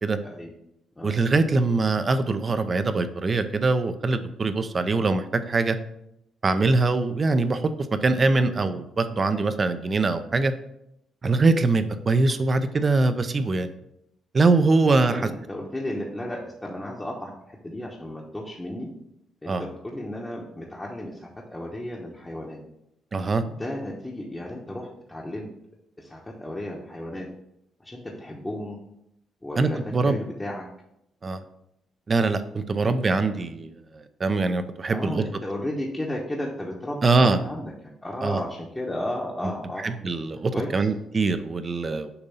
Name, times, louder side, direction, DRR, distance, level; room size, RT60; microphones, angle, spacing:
voice 1, 1.0-5.8 6.4-7.7 8.0-10.5 11.2-13.7 14.3-15.3 19.5-19.6 23.1-23.4 29.6-30.2 31.2-31.4 32.1-35.2 37.0-37.4 38.2-38.4 39.8-42.1, right 3 dB, 35° right, 10 dB, 0.5 m, -23 dB
voice 2, 14.8-18.9 19.4-22.6 23.4-25.5 26.0-27.3 27.8-28.8 29.4-30.6 34.9-39.9 40.5-40.9, left 1 dB, 15° left, -3 dB, 0.9 m, -34 dB
6.8 x 2.7 x 5.4 m, 0.79 s
cardioid pair, 90°, 0 cm